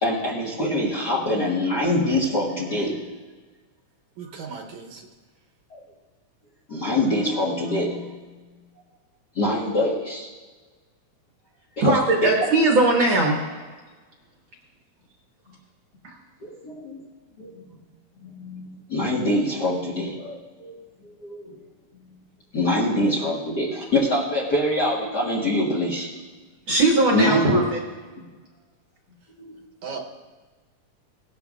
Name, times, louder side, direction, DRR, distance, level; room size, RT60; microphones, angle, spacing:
voice 1, 0.0-3.0 5.7-5.8 6.7-8.1 9.3-10.3 11.8-12.3 16.4-17.0 17.4-17.5 18.2-20.7 21.0-21.5 22.5-26.1 27.1-27.6 29.5-29.6, left 1 dB, 45° left, -5 dB, 1.3 m, -24 dB
voice 2, 4.2-5.1 29.8-30.0, right 5 dB, 75° right, 1 dB, 2.2 m, -36 dB
voice 3, 11.8-13.4 26.7-27.8, right 2 dB, 55° right, -1 dB, 1.5 m, -19 dB
18.0 x 11.5 x 2.4 m, 1.3 s
omnidirectional pair, 3.5 m